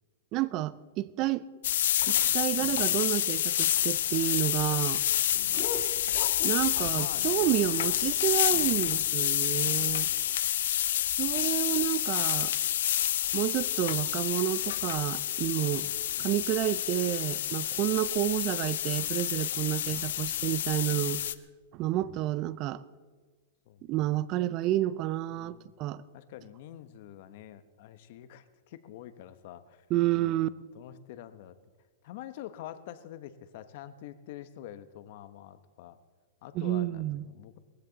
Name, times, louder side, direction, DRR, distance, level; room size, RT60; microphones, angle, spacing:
voice 1, 0.3-1.4 2.1-5.0 5.7-5.9 6.4-10.1 11.1-12.5 13.3-15.9 16.2-21.2 21.7-22.8 23.9-26.0 29.9-30.5 36.5-37.3, right 15 dB, 35° right, 0.5 m, -30 dB
sound 1, 1.6-21.3, left 11 dB, 75° left, 0.6 m, -29 dB
sound 2, 3.6-9.0, left 5 dB, 40° left, 1.6 m, -44 dB
voice 2, 5.3-5.7 6.7-7.6 8.7-9.2 9.6-10.1 15.7-15.9 20.1-20.2 20.9-21.2 23.7-24.2 25.3-25.7 26.1-29.8 30.1-30.4 30.7-31.6 32.0-36.0 36.4-37.6, left 12 dB, 55° left, 1.0 m, -47 dB
19.5 x 15.0 x 4.0 m
hypercardioid pair, 145°, 0 cm